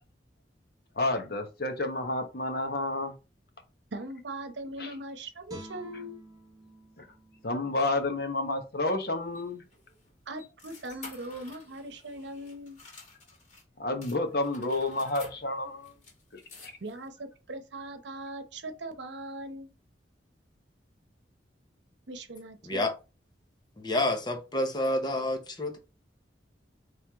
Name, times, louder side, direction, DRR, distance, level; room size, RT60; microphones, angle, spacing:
voice 1, 0.9-3.1 4.8-4.9 7.0-7.1 7.4-9.6 13.8-15.9 16.3-16.8, left 2 dB, 60° left, 1.1 m, -30 dB
voice 2, 3.9-6.2 10.3-12.8 16.8-19.7 22.1-22.9, right 1 dB, 80° right, 0.8 m, -40 dB
Guitar, 5.5-8.6 9.0-9.2, right 1 dB, 20° right, 1.1 m, -51 dB
sound 1, 8.9-13.6 14.0-17.1, left 3 dB, 40° left, 2.1 m, -52 dB
voice 3, 22.6-22.9 23.8-25.8, left 1 dB, 25° left, 0.9 m, -29 dB
4.5 x 3.3 x 3.5 m
head